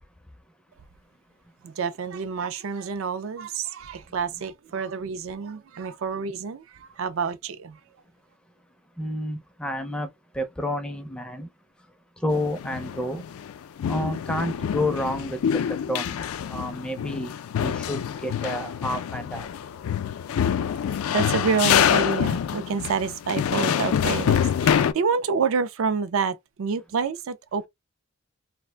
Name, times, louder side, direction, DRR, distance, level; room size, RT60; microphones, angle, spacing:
voice 1, 1.6-7.8 21.1-27.7, right 5 dB, 70° right, 0.4 m, -28 dB
voice 2, 9.0-10.1 10.3-11.5 12.2-13.2 13.9-15.6 15.9-16.2 16.5-17.3 17.6-19.5, left 1 dB, 5° left, 0.4 m, -29 dB
sound 1, 12.3-13.5 13.8-24.9, left 8 dB, 85° left, 0.3 m, -26 dB
2.4 x 2.1 x 3.2 m
head